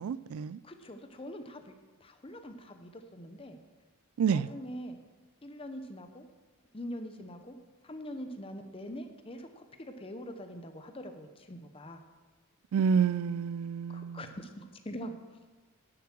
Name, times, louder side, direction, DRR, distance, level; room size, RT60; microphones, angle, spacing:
voice 1, 0.0-0.6 4.2-4.5 12.7-14.3, right 6 dB, 75° right, 0.3 m, -29 dB
voice 2, 0.6-1.7 2.0-3.6 4.3-5.0 5.4-6.3 6.7-7.6 7.8-12.0 13.9-15.1, equal, 25° left, 0.8 m, -43 dB
11.0 x 7.1 x 6.1 m
head